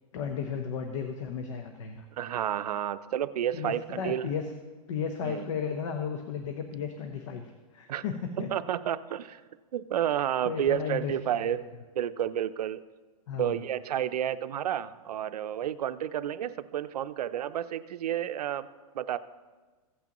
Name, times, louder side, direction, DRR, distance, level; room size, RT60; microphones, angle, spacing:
voice 1, 0.1-2.1 3.5-4.4 4.9-7.4 7.7-8.5 10.4-11.1 13.3-13.6, left 7 dB, 55° left, 6 dB, 0.9 m, -34 dB
voice 2, 2.2-4.3 5.2-5.4 7.9-8.0 8.4-9.4 9.7-11.7 11.9-12.8 13.4-18.7 18.9-19.2, right 10 dB, 90° right, 13 dB, 0.6 m, -30 dB
15.5 x 8.4 x 3.0 m, 1.3 s
hypercardioid pair, 155°, 20 cm